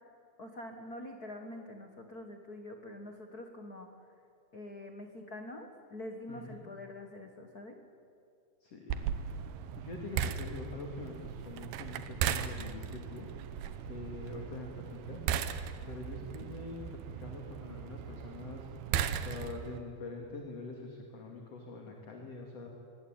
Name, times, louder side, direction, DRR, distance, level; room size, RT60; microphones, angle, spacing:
voice 1, 0.4-3.9 4.5-7.8, left 1 dB, 85° left, 4 dB, 0.8 m, -45 dB
voice 2, 6.3-6.6 8.6-9.1 9.8-13.3 13.9-15.2 15.9-18.7 19.1-22.7, left 3 dB, 45° left, 1 dB, 3.0 m, -44 dB
sound 1, 8.9-19.8, right 8 dB, 80° right, 2.9 m, -37 dB
24.0 x 21.5 x 8.9 m, 2.5 s
omnidirectional pair, 4.4 m